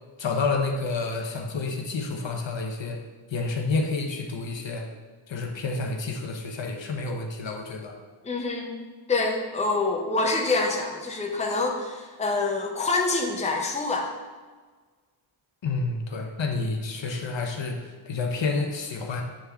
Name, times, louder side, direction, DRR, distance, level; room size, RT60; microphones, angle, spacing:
voice 1, 0.2-3.0 3.3-4.9 5.3-8.0 15.6-19.2, left 3 dB, 65° left, 3 dB, 0.9 m, -29 dB
voice 2, 8.2-8.7 9.1-14.1, left 3 dB, 15° left, 1 dB, 0.6 m, -26 dB
8.7 x 3.5 x 3.4 m, 1.4 s
wide cardioid pair, 110°, 49 cm